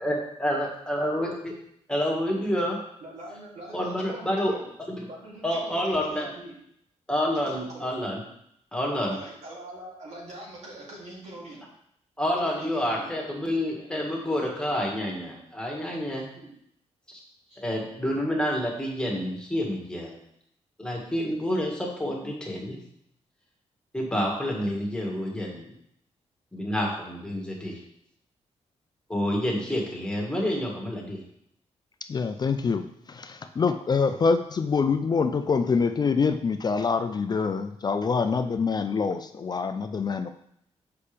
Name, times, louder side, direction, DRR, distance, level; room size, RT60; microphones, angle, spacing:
voice 1, 0.0-1.5 1.9-2.8 3.7-4.5 5.4-6.3 7.1-8.2 8.7-9.2 12.2-16.2 17.6-20.2 20.8-22.8 23.9-25.7 26.5-27.8 29.1-31.2, equal, 5° left, -2 dB, 1.7 m, -28 dB
voice 2, 3.0-4.7 5.1-6.5 7.3-7.9 9.1-11.6 12.4-13.2 13.7-14.3 15.2-15.3 16.3-16.5 17.5-17.6, right 1 dB, 70° right, -5 dB, 2.9 m, -43 dB
voice 3, 32.1-40.3, left 5 dB, 35° left, 8 dB, 0.4 m, -25 dB
6.8 x 5.6 x 3.4 m, 0.72 s
cardioid pair, 110°, 12 cm